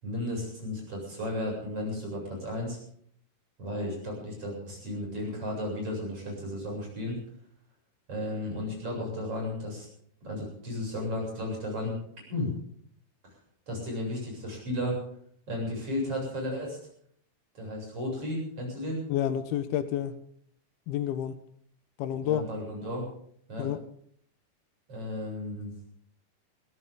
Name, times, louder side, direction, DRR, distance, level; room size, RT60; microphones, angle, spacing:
voice 1, 0.0-2.8 3.6-7.2 8.1-9.9 10.2-12.0 12.3-12.5 13.7-15.0 15.5-16.8 17.6-19.0 22.1-23.1 23.5-23.7 24.9-25.7, left 1 dB, 35° right, -1 dB, 8.7 m, -34 dB
voice 2, 19.1-20.1 20.9-21.3 22.0-22.4 23.6-23.8, left 10 dB, 80° left, 11 dB, 3.0 m, -29 dB
22.0 x 16.5 x 3.9 m, 0.63 s
omnidirectional pair, 4.4 m